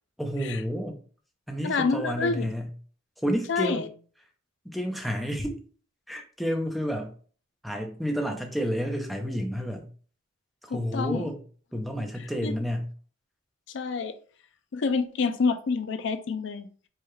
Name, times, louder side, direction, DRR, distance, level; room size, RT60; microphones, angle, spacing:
voice 1, 0.2-1.0 1.5-2.7 3.2-3.9 4.6-5.6 6.1-7.1 7.6-9.9 10.6-11.4 11.7-12.9, equal, ahead, 3 dB, 0.6 m, -30 dB
voice 2, 1.6-2.5 3.5-3.9 10.7-11.3 12.4-12.5 13.7-14.2 14.7-16.7, left 4 dB, 60° left, 10 dB, 0.4 m, -27 dB
4.7 x 2.3 x 3.1 m, 0.41 s
head